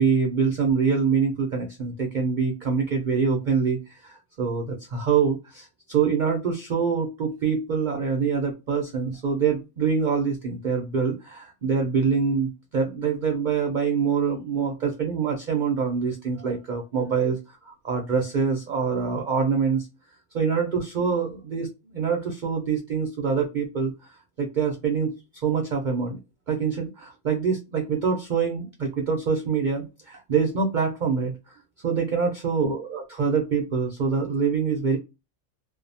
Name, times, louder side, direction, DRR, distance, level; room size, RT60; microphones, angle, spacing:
voice 1, 0.0-17.4 17.7-19.9 20.3-26.2 26.5-35.0, right 5 dB, 65° right, 2 dB, 0.4 m, -25 dB
2.6 x 2.0 x 2.6 m, 0.26 s
omnidirectional pair, 1.3 m